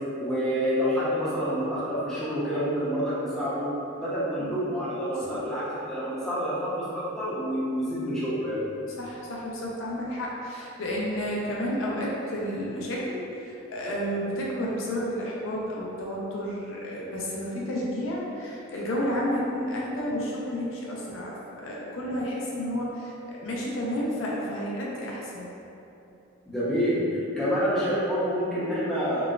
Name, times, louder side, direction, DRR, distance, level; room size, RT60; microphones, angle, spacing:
voice 1, 0.2-3.7 4.0-8.6 26.5-29.3, equal, ahead, -11 dB, 0.7 m, -28 dB
voice 2, 9.0-25.5 27.3-27.4, equal, 70° left, -4 dB, 0.5 m, -31 dB
3.9 x 2.3 x 2.3 m, 2.8 s
head